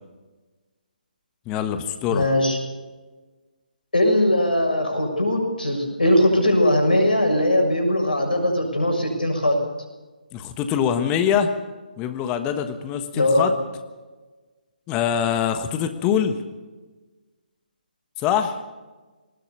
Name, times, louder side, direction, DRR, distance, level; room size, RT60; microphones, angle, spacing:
voice 1, 1.5-2.3 10.3-11.5 12.0-13.5 14.9-16.4 18.2-18.6, left 8 dB, 20° left, 9 dB, 1.4 m, -23 dB
voice 2, 2.1-2.6 3.9-9.6 13.1-13.5, left 1 dB, 75° left, 3 dB, 6.9 m, -20 dB
20.0 x 19.5 x 7.0 m, 1.3 s
figure-of-eight pair, 140°, 5 cm